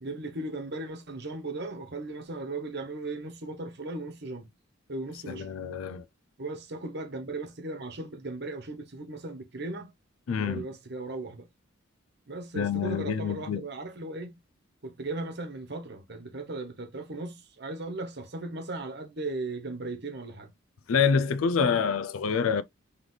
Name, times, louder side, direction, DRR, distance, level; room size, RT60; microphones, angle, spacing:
voice 1, 0.0-4.5 4.9-5.5 6.4-9.9 10.3-11.5 12.3-14.3 14.8-20.5, right 2 dB, 55° right, 1.1 m, -37 dB
voice 2, 5.3-6.0 10.3-10.7 12.6-13.6 20.9-22.6, left 6 dB, 85° left, 0.4 m, -26 dB
3.9 x 3.3 x 3.2 m
head